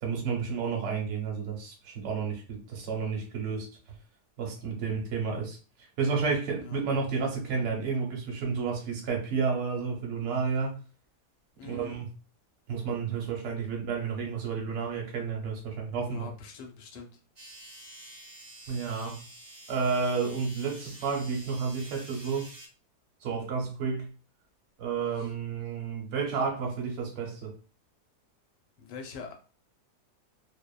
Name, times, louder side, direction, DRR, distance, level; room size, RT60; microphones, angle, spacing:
voice 1, 0.0-3.7 4.4-10.8 11.6-12.1 12.7-16.3 18.7-19.2 19.7-22.5 23.2-24.1 24.8-27.5, right 5 dB, 55° right, 0.9 m, -31 dB
voice 2, 11.6-12.0 16.1-17.2 25.1-25.3 28.8-29.3, left 4 dB, 85° left, 1.2 m, -44 dB
sound 1, 17.4-22.7, right 1 dB, 15° right, 0.7 m, -48 dB
2.9 x 2.0 x 2.3 m
omnidirectional pair, 1.8 m